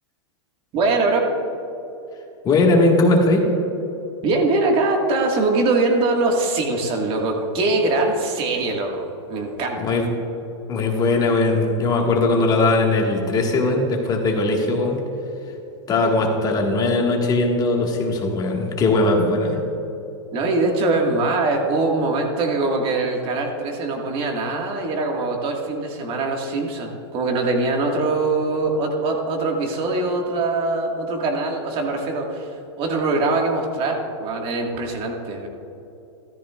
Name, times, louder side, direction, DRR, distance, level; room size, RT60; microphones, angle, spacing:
voice 1, 0.7-1.3 4.2-10.0 20.3-35.5, right 3 dB, 35° right, 1 dB, 1.8 m, -22 dB
voice 2, 2.4-3.5 9.8-10.1 10.7-15.0 15.9-19.6, left 2 dB, 25° left, 0 dB, 1.8 m, -19 dB
13.5 x 13.5 x 2.5 m, 3.0 s
hypercardioid pair, 130°, 15 cm